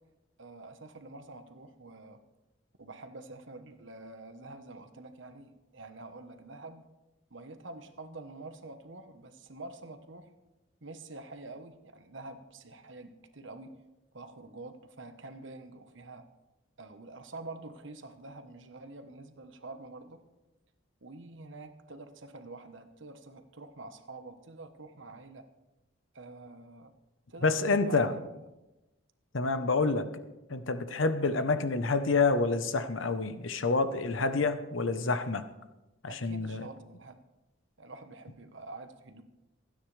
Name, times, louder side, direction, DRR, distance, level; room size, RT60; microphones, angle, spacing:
voice 1, 0.4-2.2 2.8-6.9 7.3-10.3 10.8-13.8 14.1-16.3 16.8-20.2 21.0-25.4 26.1-26.9 27.3-28.3 29.5-29.7 34.3-34.4 36.1-37.2 37.8-39.2, right 2 dB, 75° right, 8 dB, 1.2 m, -47 dB
voice 2, 27.4-28.1 29.3-30.1 30.5-35.4 36.0-36.7, left 3 dB, 85° left, 10 dB, 1.0 m, -28 dB
28.5 x 9.6 x 3.3 m, 1.0 s
head